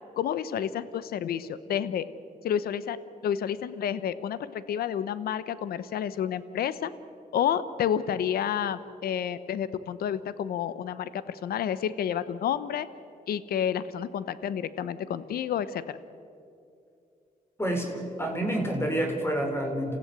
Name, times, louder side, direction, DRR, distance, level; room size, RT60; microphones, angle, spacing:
voice 1, 0.2-2.1 2.4-3.0 3.2-6.9 7.3-12.9 13.3-16.0, left 9 dB, 80° left, 15 dB, 1.0 m, -30 dB
voice 2, 17.6-20.0, right 1 dB, 15° left, 3 dB, 4.5 m, -28 dB
29.0 x 15.5 x 8.2 m, 2.6 s
cardioid pair, 70°, 16 cm